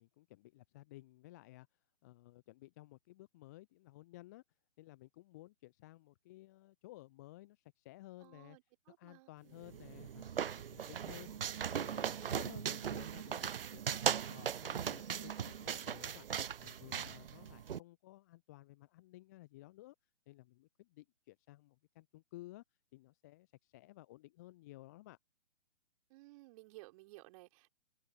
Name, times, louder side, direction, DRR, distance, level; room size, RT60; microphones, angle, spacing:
voice 1, 0.0-1.7 2.0-4.4 4.8-8.6 8.9-10.3 10.7-11.4 11.7-16.3 16.6-19.9 20.3-22.6 22.9-25.2, left 17 dB, 15° left, 0.7 m, -56 dB
voice 2, 8.2-9.7 26.1-27.7, right 21 dB, 30° right, 5.3 m, -57 dB
sound 1, 9.6-17.8, right 8 dB, 50° right, 0.5 m, -39 dB
figure-of-eight pair, 130°, 37 cm